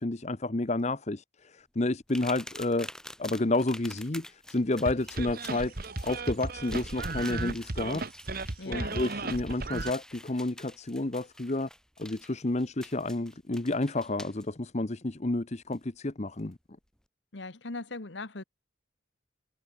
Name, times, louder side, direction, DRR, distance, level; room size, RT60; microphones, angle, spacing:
voice 1, 0.0-2.9 3.2-5.7 6.0-8.0 8.6-11.7 12.0-16.6, left 2 dB, 35° left, 0.9 m, -30 dB
sound 1, 2.1-14.4 15.7-15.8 16.4-16.5, left 1 dB, 5° left, 6.2 m, -48 dB
sound 2, 4.9-9.9, right 3 dB, 50° right, 1.6 m, -35 dB
voice 2, 8.6-9.0 17.3-18.4, left 3 dB, 65° left, 1.5 m, -39 dB
head